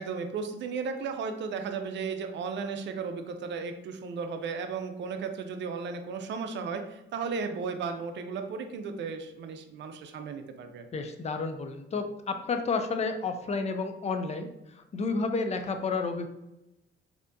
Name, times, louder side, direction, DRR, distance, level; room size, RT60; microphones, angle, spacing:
voice 1, 0.0-10.9, right 5 dB, 65° right, 7 dB, 0.5 m, -35 dB
voice 2, 10.9-14.5 14.8-16.3, left 4 dB, 35° left, 7 dB, 0.4 m, -31 dB
3.3 x 2.7 x 2.6 m, 0.90 s
cardioid pair, 90°, 20 cm